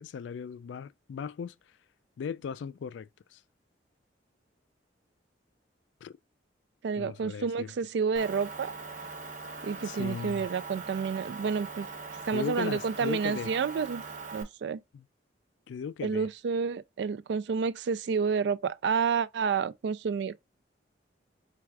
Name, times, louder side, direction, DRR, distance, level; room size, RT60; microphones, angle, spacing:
voice 1, 0.0-1.5 2.2-3.4 6.0-6.1 7.0-7.7 9.8-10.5 12.3-13.5 14.9-15.1 15.7-16.3, left 6 dB, 75° left, 0.3 m, -37 dB
voice 2, 6.8-8.7 9.6-11.9 12.3-14.0 14.3-14.8 16.0-20.4, right 5 dB, 65° right, 0.3 m, -29 dB
Motor vehicle (road) / Engine, 8.2-14.4, right 4 dB, 40° right, 0.8 m, -41 dB
4.7 x 3.4 x 2.3 m
head